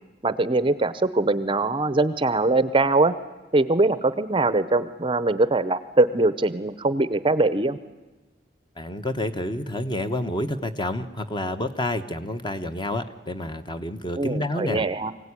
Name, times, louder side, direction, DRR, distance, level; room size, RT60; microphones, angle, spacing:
voice 1, 0.2-3.1 3.5-7.8 14.2-15.1, right 2 dB, 25° right, 14 dB, 0.7 m, -22 dB
voice 2, 8.8-14.8, left 1 dB, 25° left, 8 dB, 1.1 m, -29 dB
24.0 x 16.5 x 9.9 m, 1.2 s
head